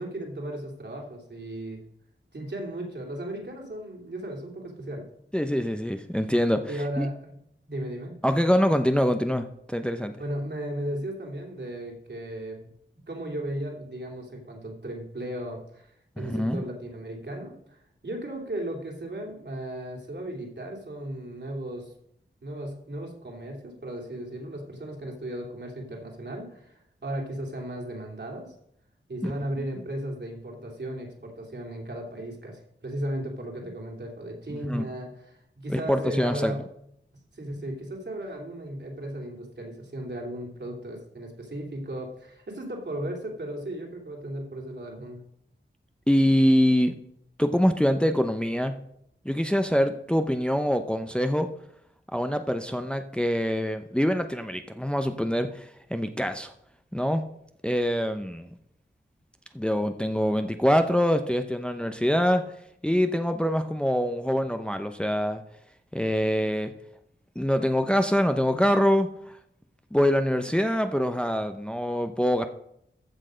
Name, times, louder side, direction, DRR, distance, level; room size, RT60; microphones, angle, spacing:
voice 1, 0.0-1.8 2.3-5.1 6.7-7.4 7.7-8.2 10.2-12.7 13.1-21.9 22.4-28.5 29.1-36.7 37.3-45.2, right 1 dB, 60° right, 0 dB, 2.9 m, -36 dB
voice 2, 5.3-7.1 8.2-10.1 16.2-16.6 29.2-29.3 34.5-34.9 35.7-36.5 46.1-46.9 47.4-48.7 49.2-51.5 52.1-56.5 56.9-57.2 57.6-58.5 59.5-62.4 62.8-65.4 65.9-66.7 67.4-69.1 69.9-72.5, equal, 5° left, 7 dB, 0.7 m, -24 dB
14.5 x 6.5 x 5.1 m, 0.75 s
wide cardioid pair, 60°, 20 cm